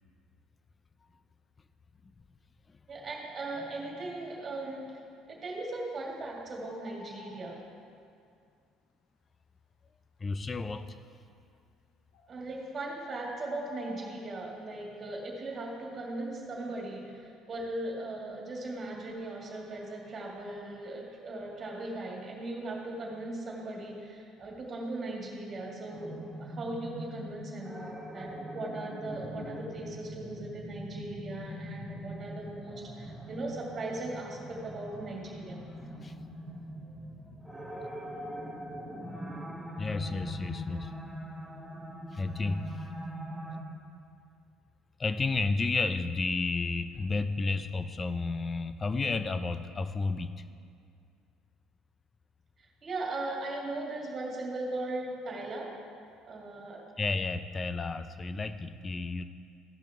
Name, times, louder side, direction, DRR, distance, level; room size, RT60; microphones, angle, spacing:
voice 1, 2.9-7.7 12.3-35.6 52.6-55.9 56.3-56.9, right 2 dB, 35° right, -2 dB, 2.3 m, -38 dB
sound 1, 6.6-7.5 12.1-12.3 13.0-14.2, left 2 dB, 90° left, 1.0 m, -50 dB
voice 2, 10.2-11.0 36.0-36.2 39.8-40.9 42.1-42.8 45.0-50.3 57.0-59.2, left 3 dB, 25° left, 12 dB, 0.5 m, -32 dB
Industrial Grind, 25.9-43.6, equal, ahead, 1.1 m, -42 dB
15.5 x 5.7 x 3.7 m, 2.4 s
cardioid pair, 105°, 0 cm